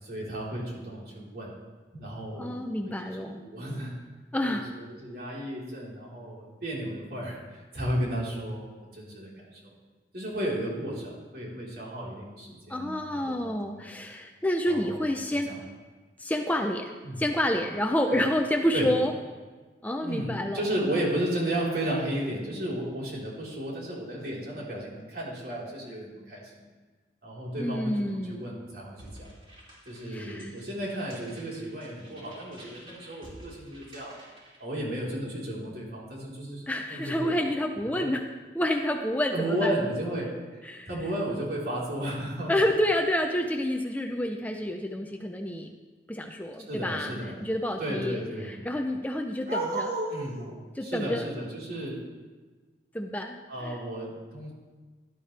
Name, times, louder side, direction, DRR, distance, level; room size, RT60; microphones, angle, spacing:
voice 1, 0.0-1.5 1.9-3.9 4.4-9.7 10.1-13.9 14.7-15.6 17.0-17.2 18.1-18.3 18.7-18.9 20.0-26.6 27.2-29.3 29.9-34.2 34.6-37.4 38.0-38.1 39.3-42.6 46.7-47.5 47.8-48.5 49.4-52.0 53.5-54.5, right 1 dB, 55° right, -5 dB, 4.0 m, -34 dB
voice 2, 2.4-3.4 4.3-4.7 12.7-15.5 16.2-19.1 19.8-20.6 27.6-28.6 30.1-30.6 36.7-38.3 38.5-39.7 40.6-40.9 42.5-45.7 46.1-49.9 50.8-51.3 52.9-53.8, left 1 dB, 10° left, 4 dB, 0.6 m, -29 dB
sound 1, 29.0-34.6, right 1 dB, 30° right, 3.7 m, -50 dB
17.0 x 12.0 x 3.4 m, 1.3 s
head